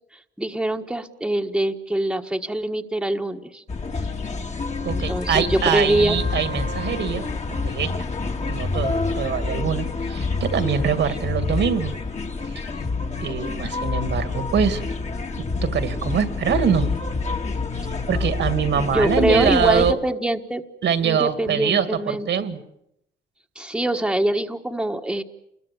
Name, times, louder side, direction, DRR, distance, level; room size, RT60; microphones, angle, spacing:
voice 1, 0.4-3.6 4.9-6.2 18.9-20.6 21.0-22.5 23.5-25.2, right 1 dB, 5° right, 4 dB, 1.5 m, -24 dB
sound 1, 3.7-19.9, left 3 dB, 35° left, 2.1 m, -27 dB
voice 2, 4.8-8.1 8.5-11.9 12.4-12.7 13.2-14.8 15.4-16.9 17.7-20.0 20.8-22.6, right 7 dB, 65° right, 9 dB, 2.3 m, -24 dB
28.5 x 21.5 x 7.0 m, 0.79 s
cardioid pair, 90°, 20 cm